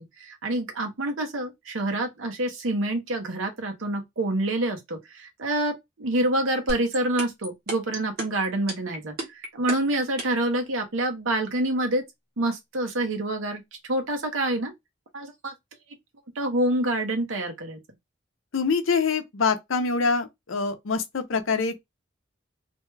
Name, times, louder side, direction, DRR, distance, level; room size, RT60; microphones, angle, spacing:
voice 1, 0.0-9.1 9.5-12.0 12.4-13.6 13.9-14.7 15.1-15.5 16.4-17.8, right 1 dB, 85° right, 0.9 m, -27 dB
sound 1, 6.7-10.5, right 2 dB, 50° right, 1.1 m, -31 dB
voice 2, 18.5-21.8, left 4 dB, 90° left, 0.6 m, -25 dB
2.7 x 2.2 x 3.2 m
head